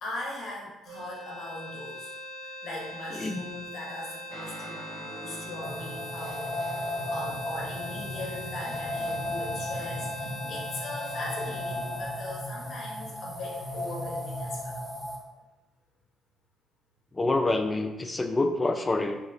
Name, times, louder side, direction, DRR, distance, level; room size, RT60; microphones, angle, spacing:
voice 1, 0.0-2.1 2.4-14.8, left 2 dB, 55° left, -3 dB, 0.9 m, -39 dB
sound 1, 0.9-13.1, left 1 dB, 85° right, 0.4 m, -42 dB
Guitar, 4.3-13.1, right 2 dB, 55° right, 1.2 m, -47 dB
sound 2, 5.6-15.2, left 1 dB, ahead, 1.0 m, -35 dB
voice 2, 17.1-19.2, left 2 dB, 25° left, 6 dB, 0.4 m, -26 dB
2.9 x 2.9 x 2.5 m, 1.0 s
hypercardioid pair, 55°, 0 cm